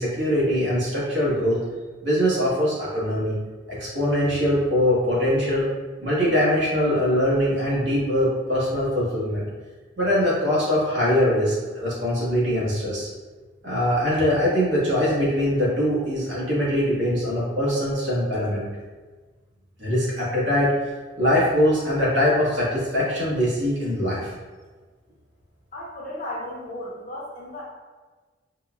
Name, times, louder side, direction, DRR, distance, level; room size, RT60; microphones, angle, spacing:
voice 1, 0.0-1.6 2.0-3.3 3.7-5.7 6.0-9.5 10.0-13.1 13.6-18.6 19.8-20.7 21.2-24.3, equal, 75° right, -7 dB, 1.2 m, -22 dB
voice 2, 25.7-27.7, left 1 dB, 45° left, -4 dB, 0.7 m, -35 dB
4.3 x 2.2 x 2.3 m, 1.3 s
head